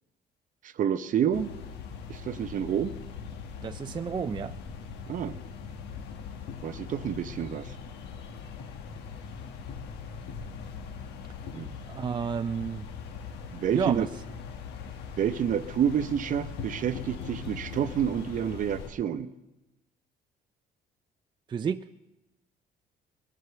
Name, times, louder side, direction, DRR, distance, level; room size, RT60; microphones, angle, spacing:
voice 1, 0.6-1.5 2.1-2.9 5.1-5.4 6.6-7.7 11.5-11.7 13.5-14.1 15.2-19.3, right 9 dB, 50° right, 12 dB, 0.8 m, -28 dB
sound 1, 1.3-18.9, left 6 dB, 85° left, 1.5 m, -41 dB
voice 2, 3.6-4.6 11.9-12.8 13.7-14.1 21.5-21.8, right 6 dB, 25° right, 10 dB, 0.4 m, -31 dB
21.0 x 8.0 x 6.9 m, 1.0 s
cardioid pair, 110°, 17 cm